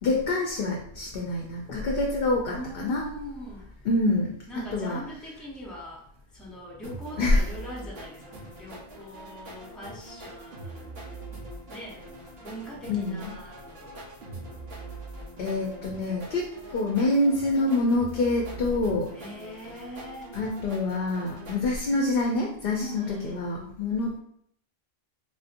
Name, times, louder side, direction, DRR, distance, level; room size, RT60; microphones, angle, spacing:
voice 1, 0.0-3.0 3.9-4.4 4.7-5.0 7.2-7.4 12.9-13.3 15.4-19.1 20.3-24.2, left 2 dB, 65° left, -1 dB, 0.7 m, -26 dB
voice 2, 2.5-3.7 4.5-6.1 6.3-11.0 11.7-12.0 12.4-14.1 19.1-20.3 22.8-23.5, equal, ahead, -5 dB, 0.7 m, -41 dB
sound 1, 6.8-21.6, right 2 dB, 75° right, 1.2 m, -43 dB
3.7 x 2.7 x 2.5 m, 0.66 s
omnidirectional pair, 1.1 m